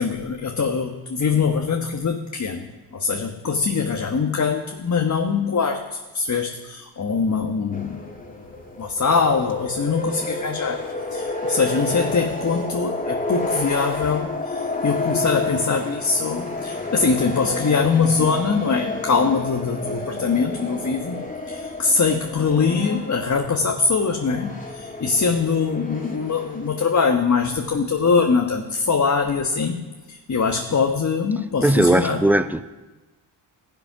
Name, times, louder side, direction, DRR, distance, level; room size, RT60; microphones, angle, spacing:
voice 1, 0.0-2.7 2.9-8.1 8.8-32.3, left 5 dB, 35° left, 1.4 m, -23 dB
sound 1, 7.7-26.8, left 2 dB, 15° left, 2.5 m, -30 dB
voice 2, 31.6-32.6, right 1 dB, 5° right, 0.9 m, -18 dB
15.0 x 10.5 x 6.1 m
supercardioid pair, 65°, 48 cm